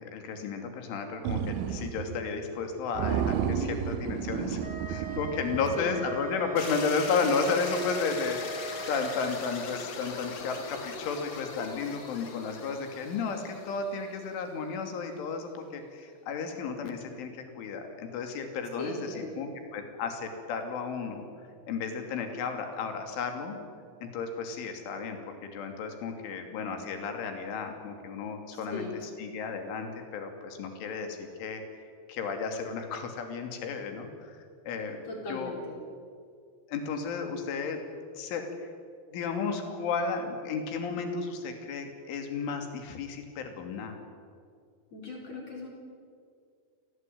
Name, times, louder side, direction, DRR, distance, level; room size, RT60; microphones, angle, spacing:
voice 1, 0.0-4.6 4.9-21.2 21.7-23.6 24.0-35.5 36.7-37.8 38.1-38.4 39.1-44.0, left 5 dB, 70° left, 5 dB, 5.0 m, -33 dB
sound 1, 1.2-2.2 2.5-2.6 2.9-6.3, right 8 dB, 80° right, 2.2 m, -32 dB
Wind instrument woodwind instrument, 4.6-9.4, right 1 dB, 20° right, 2.3 m, -40 dB
voice 2, 5.6-5.9 18.8-19.4 28.7-29.0 35.0-35.8 44.9-45.7, left 2 dB, 35° left, -1 dB, 5.0 m, -38 dB
sound 2, 6.6-14.6, left 5 dB, 50° left, 3.0 m, -41 dB
27.0 x 18.0 x 9.3 m, 2.2 s
omnidirectional pair, 6.0 m